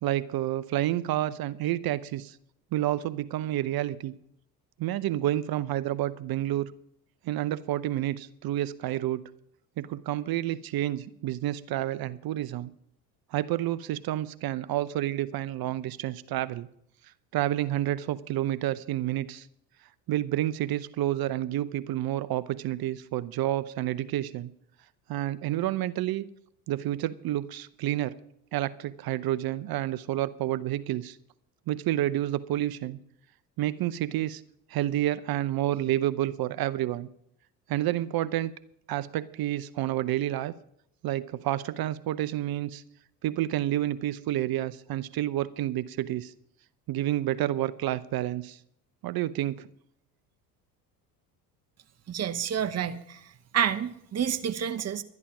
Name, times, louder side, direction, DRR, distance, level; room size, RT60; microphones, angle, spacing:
voice 1, 0.0-2.4 2.7-4.1 4.8-6.7 7.2-9.2 9.8-12.7 13.3-16.7 17.3-19.5 20.1-24.5 25.1-26.3 26.7-28.2 28.5-31.2 31.7-33.0 33.6-34.4 34.7-37.1 37.7-38.5 38.9-40.5 41.0-42.8 43.2-46.3 46.9-48.6 49.0-49.7, right 14 dB, 45° right, 16 dB, 0.7 m, -29 dB
voice 2, 52.1-53.2 53.5-55.0, right 8 dB, 30° right, 10 dB, 1.0 m, -29 dB
12.0 x 11.0 x 6.0 m, 0.70 s
hypercardioid pair, 70°, 50 cm